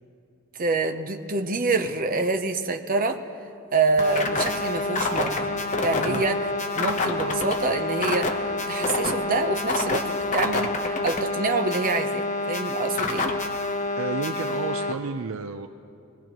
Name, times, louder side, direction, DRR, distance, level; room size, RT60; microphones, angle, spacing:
voice 1, 0.6-3.2 3.7-5.5 5.8-13.3, right 3 dB, 40° right, 6 dB, 0.8 m, -26 dB
sound 1, 4.0-14.9, left 2 dB, 35° left, 0.9 m, -27 dB
voice 2, 14.0-15.7, right 4 dB, 65° right, 7 dB, 0.5 m, -31 dB
24.5 x 18.5 x 3.0 m, 2.6 s
head